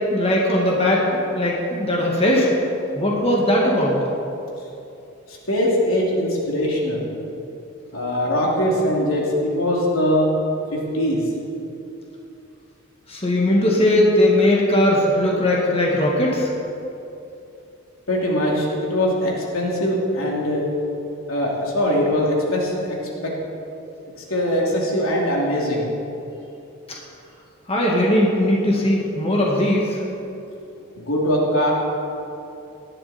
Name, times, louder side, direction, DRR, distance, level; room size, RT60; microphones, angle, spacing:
voice 1, 0.1-2.5 2.9-4.0 13.1-16.5 27.7-30.0, left 1 dB, 30° left, -3 dB, 2.0 m, -19 dB
voice 2, 5.5-7.1 7.9-10.3 10.7-11.2 18.1-20.6 21.3-23.0 23.2-23.3 24.3-25.9 31.0-31.7, equal, 85° left, -3 dB, 3.1 m, -21 dB
18.0 x 12.0 x 4.4 m, 2.8 s
head